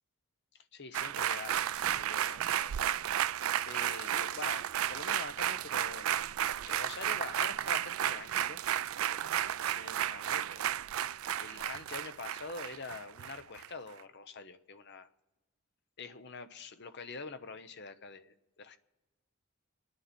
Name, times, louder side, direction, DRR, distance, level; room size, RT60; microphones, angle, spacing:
voice 1, 0.5-3.0 3.7-6.1 6.5-8.6 9.1-10.6 11.4-15.1 16.0-18.8, left 4 dB, 50° left, 0.9 m, -46 dB
sound 1, 0.9-13.7 14.0-14.1, right 11 dB, 75° right, 0.4 m, -33 dB
27.5 x 9.7 x 4.4 m
head